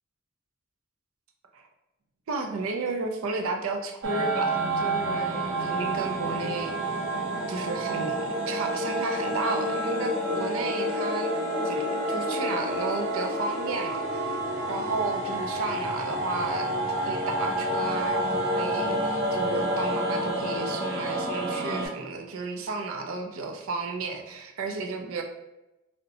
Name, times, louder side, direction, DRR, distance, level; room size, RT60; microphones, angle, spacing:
voice 1, 2.3-4.5 4.8-7.0 7.5-11.3 11.6-11.8 12.1-14.4 14.7-16.7 17.0-25.2, right 3 dB, 85° right, 4 dB, 0.4 m, -33 dB
sound 1, 4.0-21.9, right 1 dB, 55° right, 0.9 m, -29 dB
3.9 x 2.1 x 2.6 m, 0.96 s
head